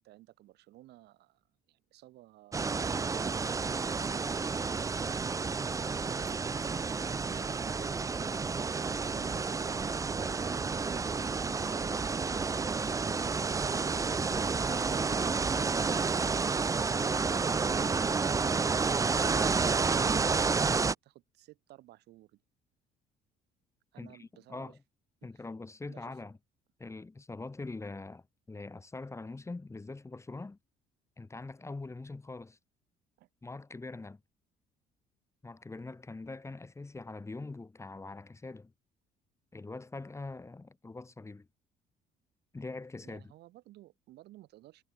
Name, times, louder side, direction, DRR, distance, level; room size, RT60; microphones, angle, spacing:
voice 1, 0.0-5.1 12.3-14.2 17.4-22.4 23.9-24.8 25.2-25.4 25.9-26.2 33.2-33.3 43.0-44.8, right 16 dB, 80° right, 7.7 m, -56 dB
sound 1, 2.5-20.9, right 4 dB, 20° right, 0.6 m, -30 dB
voice 2, 24.0-24.8 25.2-26.4 26.8-30.6 31.2-32.6 33.4-34.2 35.4-38.7 39.5-41.5 42.5-43.3, left 3 dB, 15° left, 2.4 m, -43 dB
cardioid pair, 110°, 17 cm